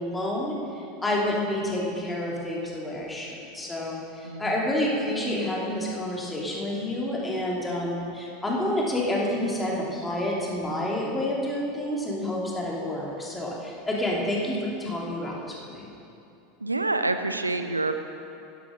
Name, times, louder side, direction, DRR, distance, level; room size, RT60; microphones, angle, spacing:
voice 1, 0.0-15.9, left 1 dB, 10° left, -3 dB, 2.8 m, -29 dB
voice 2, 16.6-17.9, right 2 dB, 85° right, 8 dB, 0.5 m, -27 dB
11.5 x 11.0 x 6.2 m, 2.8 s
figure-of-eight pair, 80°, 0 cm